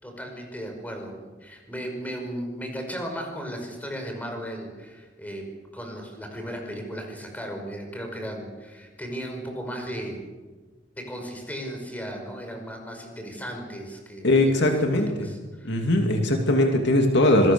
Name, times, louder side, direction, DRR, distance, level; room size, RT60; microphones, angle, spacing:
voice 1, 0.0-5.5 5.7-10.2 10.9-15.9, equal, 10° left, 3 dB, 5.5 m, -36 dB
voice 2, 14.2-15.3 15.6-17.5, left 1 dB, 65° left, 3 dB, 2.6 m, -20 dB
26.5 x 20.5 x 7.0 m, 1.3 s
head